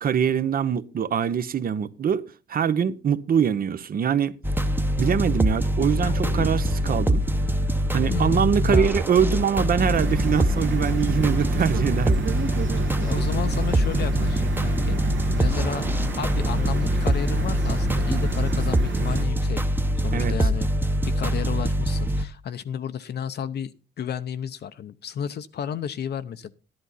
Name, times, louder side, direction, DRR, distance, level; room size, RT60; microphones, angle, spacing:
voice 1, 0.0-4.4 5.0-7.2 7.9-12.3 20.1-20.4, right 7 dB, 50° right, 0.8 m, -23 dB
sound 1, 4.4-22.2, equal, 10° right, 0.9 m, -24 dB
sound 2, 6.0-10.6 10.9-11.0, left 4 dB, 40° left, 1.1 m, -40 dB
voice 2, 8.1-8.9 13.0-19.6 20.0-20.7 21.1-23.7 24.0-26.5, left 8 dB, 55° left, 0.7 m, -32 dB
sound 3, 9.8-19.2, right 4 dB, 75° right, 1.8 m, -31 dB
11.0 x 10.5 x 4.0 m
cardioid pair, 90°, 20 cm